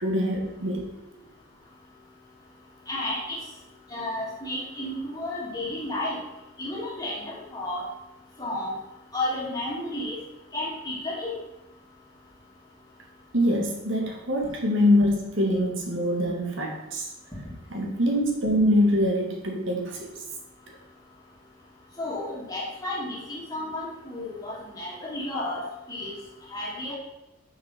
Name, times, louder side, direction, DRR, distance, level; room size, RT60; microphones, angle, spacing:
voice 1, 0.0-0.9 13.3-17.1 17.7-20.1, left 1 dB, 60° right, 0 dB, 1.8 m, -24 dB
voice 2, 2.9-3.4 3.9-6.2 6.6-7.8 8.4-8.7 9.1-10.2 10.5-11.3 22.0-25.6 25.9-26.1 26.5-26.9, left 1 dB, 15° left, -6 dB, 2.8 m, -32 dB
6.7 x 6.7 x 5.9 m, 0.95 s
head